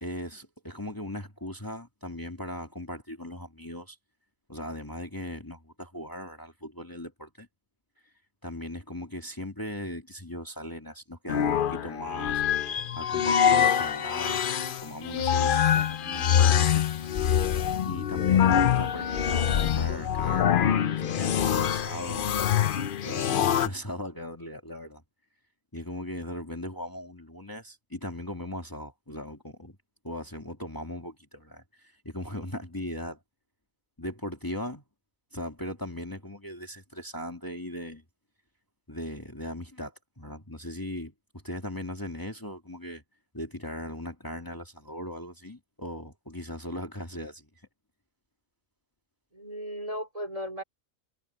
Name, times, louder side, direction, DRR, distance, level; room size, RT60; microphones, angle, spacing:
voice 1, 0.0-4.0 4.5-7.5 8.4-16.9 17.9-22.4 23.0-25.0 25.7-29.8 30.0-33.2 34.0-34.8 35.3-38.0 38.9-43.0 43.3-47.5, left 1 dB, 15° left, 2.4 m, -38 dB
sound 1, 11.3-23.7, left 8 dB, 55° left, 0.7 m, -25 dB
voice 2, 18.2-18.7 49.3-50.6, equal, 25° right, 2.8 m, -37 dB
omnidirectional pair, 1.4 m